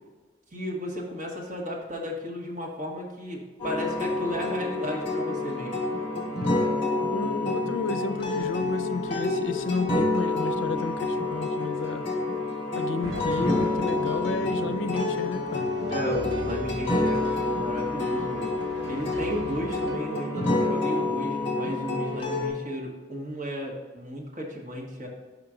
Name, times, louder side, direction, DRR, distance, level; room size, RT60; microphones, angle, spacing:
voice 1, 0.5-5.9 15.9-25.1, equal, 40° right, -2 dB, 1.5 m, -34 dB
sound 1, 3.6-22.5, left 2 dB, 30° left, 1.8 m, -28 dB
voice 2, 7.1-12.1 12.7-15.7, left 3 dB, 85° left, 10 dB, 0.5 m, -31 dB
sound 2, 13.0-20.0, right 1 dB, 75° right, 0.8 m, -39 dB
5.9 x 5.7 x 3.8 m, 1.3 s
head